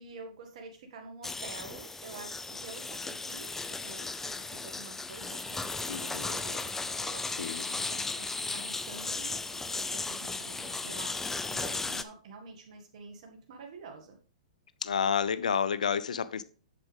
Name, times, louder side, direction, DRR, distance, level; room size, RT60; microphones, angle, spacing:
voice 1, 0.0-14.2, right 4 dB, 60° right, 2.0 m, -48 dB
sound 1, 1.2-12.0, left 3 dB, 10° left, 0.5 m, -36 dB
voice 2, 5.9-6.4 7.3-7.7 14.8-16.4, left 7 dB, 80° left, 0.7 m, -30 dB
7.8 x 7.3 x 3.5 m
hypercardioid pair, 120°, 4 cm